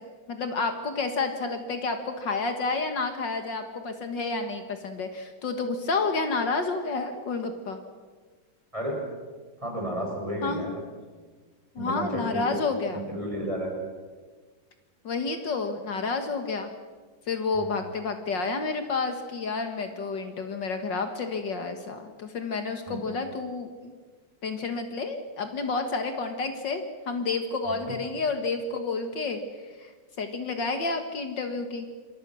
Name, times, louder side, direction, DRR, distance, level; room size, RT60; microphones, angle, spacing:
voice 1, 0.3-7.8 10.4-10.6 11.8-13.0 15.0-16.7 17.3-23.9 24.4-29.9 30.2-31.9, left 4 dB, 65° left, 6 dB, 2.3 m, -30 dB
voice 2, 9.6-10.8 11.8-12.6 12.9-13.7 17.5-17.7 22.9-23.0 27.7-28.0, equal, 15° right, 0 dB, 6.6 m, -32 dB
28.0 x 22.5 x 6.4 m, 1.4 s
omnidirectional pair, 2.1 m